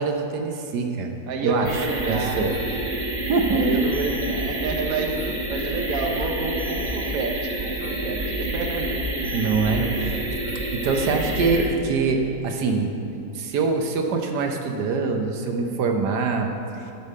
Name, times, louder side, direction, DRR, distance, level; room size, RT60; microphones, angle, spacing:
voice 1, 0.0-1.1 1.4-2.5 3.3-3.8 9.3-9.9 10.7-13.0 13.3-16.5, right 4 dB, 90° right, 3 dB, 1.4 m, -24 dB
voice 2, 1.3-2.4 2.7-2.8 3.5-10.3 10.8-11.0, right 3 dB, 60° right, 3 dB, 1.3 m, -30 dB
sound 1, 1.6-11.6, right 1 dB, 25° right, 1.4 m, -28 dB
11.0 x 5.3 x 6.5 m, 2.8 s
omnidirectional pair, 1.7 m